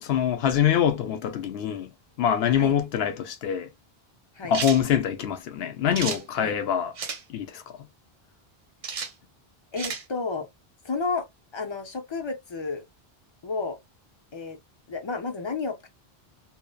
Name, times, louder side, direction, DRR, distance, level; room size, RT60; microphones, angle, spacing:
voice 1, 0.0-1.9 2.2-3.7 4.5-6.9 7.3-7.6, left 9 dB, 80° left, 0.8 m, -24 dB
sound 1, 4.5-4.8 5.9-6.2 7.0-7.2 8.8-9.1 9.8-10.0, right 5 dB, 45° right, 0.5 m, -32 dB
voice 2, 9.7-10.5 10.8-11.3 11.5-12.8 13.4-13.8 14.3-14.6 14.9-15.9, left 4 dB, 35° left, 0.5 m, -31 dB
2.7 x 2.0 x 2.2 m
omnidirectional pair, 1.0 m